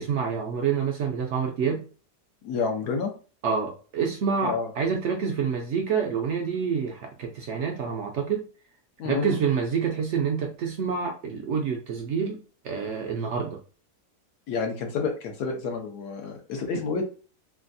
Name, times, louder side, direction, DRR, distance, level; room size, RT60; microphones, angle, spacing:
voice 1, 0.0-1.8 3.4-8.5 9.0-13.6 16.7-16.8, right 6 dB, 70° right, 2 dB, 0.7 m, -27 dB
voice 2, 2.4-3.1 4.4-4.7 9.0-9.4 14.5-17.0, left 5 dB, 85° left, 3 dB, 1.3 m, -29 dB
3.4 x 2.3 x 2.5 m, 0.37 s
omnidirectional pair, 1.6 m